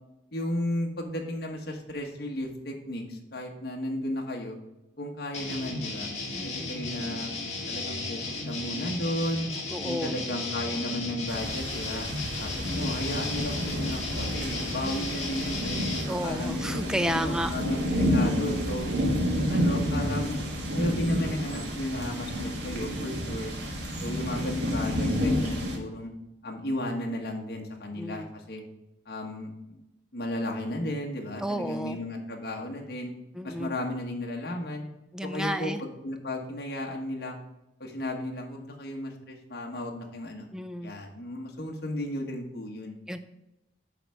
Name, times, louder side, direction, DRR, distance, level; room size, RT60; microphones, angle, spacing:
voice 1, 0.3-4.6 5.0-6.1 6.4-7.3 7.7-9.5 9.8-12.1 12.4-16.6 17.0-18.9 19.3-20.4 20.7-23.5 24.0-26.1 26.4-28.6 29.1-29.8 30.1-33.1 33.4-34.9 35.2-37.4 37.8-40.5 40.8-43.0, left 1 dB, 55° left, 0 dB, 1.3 m, -34 dB
sound 1, 5.3-16.0, left 3 dB, 35° left, 1.7 m, -35 dB
voice 2, 6.3-6.7 9.7-10.1 14.8-15.1 16.1-17.5 24.0-24.4 28.0-28.3 31.4-32.0 33.3-33.7 35.1-35.8 40.5-40.9 43.1-43.2, equal, 5° right, 9 dB, 0.4 m, -32 dB
sound 2, 11.3-25.8, equal, 65° right, 1.6 m, -30 dB
9.8 x 3.5 x 6.3 m, 0.91 s
head